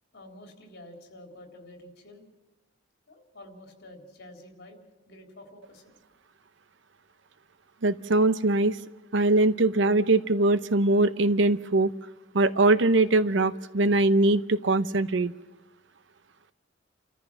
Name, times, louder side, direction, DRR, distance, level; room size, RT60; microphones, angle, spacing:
voice 1, 0.1-2.2 3.1-6.0, left 1 dB, 60° left, 3 dB, 3.7 m, -49 dB
voice 2, 7.8-8.8 9.1-11.9 12.3-15.3, right 2 dB, 65° right, 14 dB, 0.8 m, -22 dB
30.0 x 14.5 x 6.1 m, 1.1 s
head